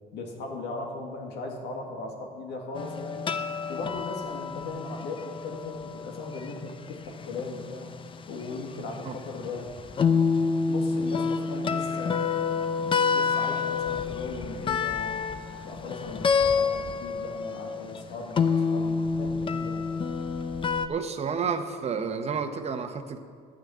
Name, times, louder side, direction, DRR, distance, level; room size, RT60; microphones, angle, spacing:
voice 1, 0.1-3.3 3.7-7.9 8.3-9.7 10.7-12.3 13.1-15.2 15.6-19.9, left 3 dB, 85° left, 1 dB, 2.1 m, -38 dB
sound 1, 2.8-20.9, left 5 dB, 30° left, 0.6 m, -28 dB
voice 2, 20.9-23.2, right 6 dB, 40° right, 8 dB, 0.9 m, -30 dB
10.0 x 6.5 x 8.5 m, 2.2 s
cardioid pair, 110°, 17 cm